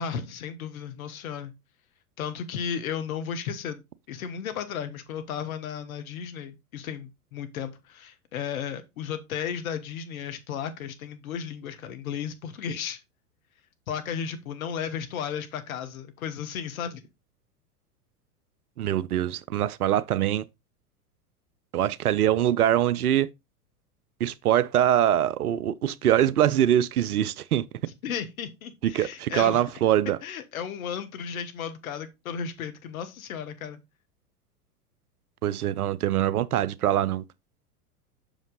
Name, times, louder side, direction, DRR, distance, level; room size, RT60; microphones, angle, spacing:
voice 1, 0.0-1.5 2.2-13.0 13.9-17.0 28.0-29.6 30.2-33.8, left 7 dB, 60° left, 1.3 m, -34 dB
voice 2, 18.8-20.4 21.7-23.3 24.2-27.6 28.8-30.2 35.4-37.2, right 11 dB, 70° right, 0.6 m, -23 dB
6.3 x 5.0 x 3.8 m
figure-of-eight pair, 90°, 47 cm